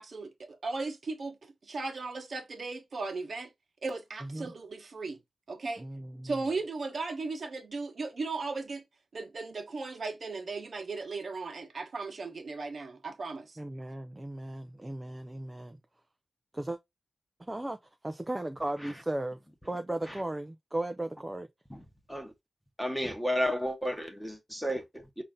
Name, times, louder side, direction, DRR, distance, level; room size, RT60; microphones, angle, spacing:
voice 1, 0.0-3.5 3.8-5.2 5.5-5.9 6.2-8.8 9.1-13.6, right 3 dB, 50° right, 1.0 m, -36 dB
voice 2, 4.2-4.5 5.8-6.3 13.6-15.8 16.5-16.8 17.4-17.8 18.0-19.4 19.7-21.5, right 1 dB, 15° right, 0.3 m, -36 dB
voice 3, 21.7-22.3 22.8-25.2, equal, 5° left, 0.9 m, -33 dB
5.4 x 2.6 x 3.6 m
wide cardioid pair, 170°, 0 cm